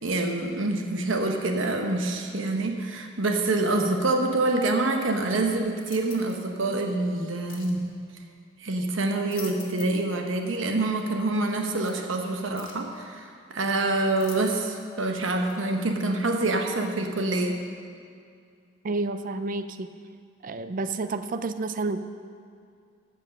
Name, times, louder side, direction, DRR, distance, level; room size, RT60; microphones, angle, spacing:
voice 1, 0.0-7.8 8.6-17.6, right 2 dB, 70° right, 3 dB, 1.0 m, -26 dB
sound 1, 5.8-6.5 7.5-7.8 9.0-10.1 10.4-10.5 11.9-12.0 12.6-12.9 14.2-14.8 15.5-15.6, left 7 dB, 65° left, 1.6 m, -46 dB
voice 2, 18.8-19.9 20.4-22.0, right 3 dB, 40° right, 11 dB, 0.4 m, -30 dB
14.5 x 5.3 x 6.3 m, 2.3 s
head